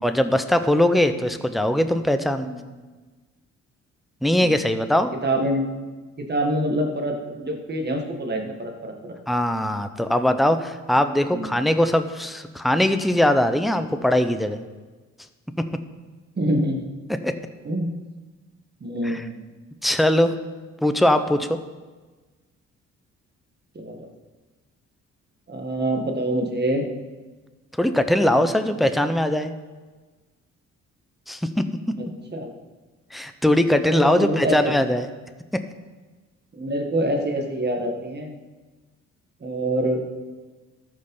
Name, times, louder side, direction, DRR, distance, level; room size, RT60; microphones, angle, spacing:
voice 1, 0.0-2.5 4.2-5.1 9.3-14.6 17.2-17.3 19.0-19.2 19.8-20.4 20.8-21.6 27.8-29.5 31.3-31.6 33.1-35.1 35.5-35.6, left 1 dB, ahead, 9 dB, 0.6 m, -21 dB
voice 2, 5.2-5.7 6.2-9.1 11.3-11.5 16.4-16.9 17.6-18.0 18.8-19.5 23.8-24.1 25.5-26.9 28.3-28.7 32.3-32.5 33.8-34.9 36.5-38.3 39.4-40.0, right 1 dB, 35° right, 3 dB, 1.7 m, -26 dB
13.5 x 5.5 x 5.4 m, 1.3 s
cardioid pair, 90°, 30 cm